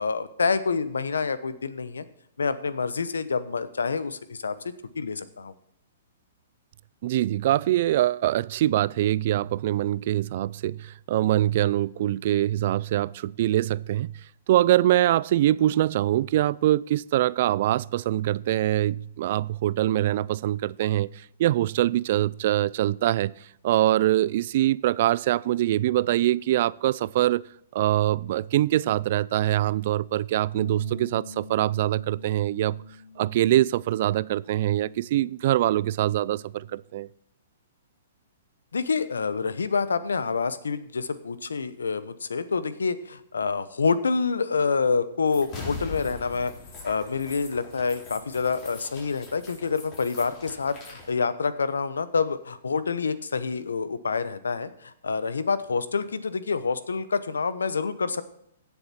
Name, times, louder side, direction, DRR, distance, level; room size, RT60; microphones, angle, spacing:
voice 1, 0.0-2.0 2.4-4.6 5.0-5.5 38.7-46.5 46.8-58.2, left 5 dB, 85° left, 0.9 m, -27 dB
voice 2, 7.0-14.2 14.5-23.3 23.6-27.4 27.7-32.8 33.2-37.1, right 13 dB, 55° right, 0.3 m, -24 dB
Bass guitar, 30.5-36.8, left 5 dB, 65° left, 3.4 m, -48 dB
sound 1, 45.3-51.1, left 3 dB, 30° left, 4.5 m, -41 dB
16.5 x 7.2 x 4.4 m
hypercardioid pair, 125°, 0 cm